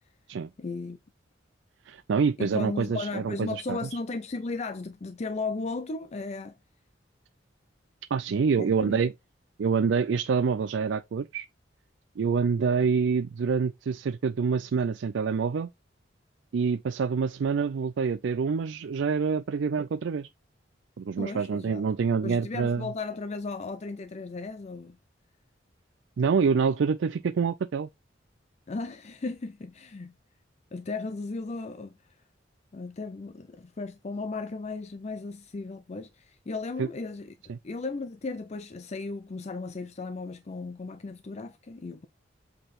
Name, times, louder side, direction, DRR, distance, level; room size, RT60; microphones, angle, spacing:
voice 1, 0.6-1.0 2.4-6.6 8.6-9.0 21.2-21.8 22.2-25.0 28.7-30.1 30.7-32.2 32.7-42.1, left 3 dB, 35° left, 0.5 m, -36 dB
voice 2, 1.9-3.8 8.1-9.1 9.6-11.5 12.2-15.7 16.5-20.3 21.0-22.9 26.2-27.9 36.8-36.9 37.5-37.6, right 5 dB, 70° right, 0.4 m, -26 dB
7.8 x 3.9 x 4.2 m
head